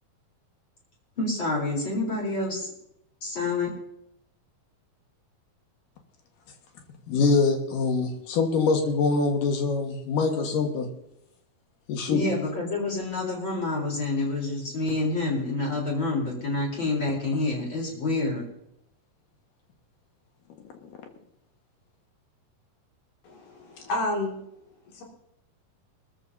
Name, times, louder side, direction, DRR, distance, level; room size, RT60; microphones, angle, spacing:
voice 1, 1.2-2.7 3.2-3.7 12.1-18.4, left 2 dB, 30° left, -2 dB, 4.4 m, -28 dB
voice 2, 7.1-10.9 11.9-12.3, left 4 dB, 65° left, 3 dB, 3.0 m, -24 dB
voice 3, 23.2-24.4 24.8-25.0, left 2 dB, 90° left, -1 dB, 4.4 m, -30 dB
21.5 x 13.5 x 2.8 m, 0.80 s
omnidirectional pair, 4.3 m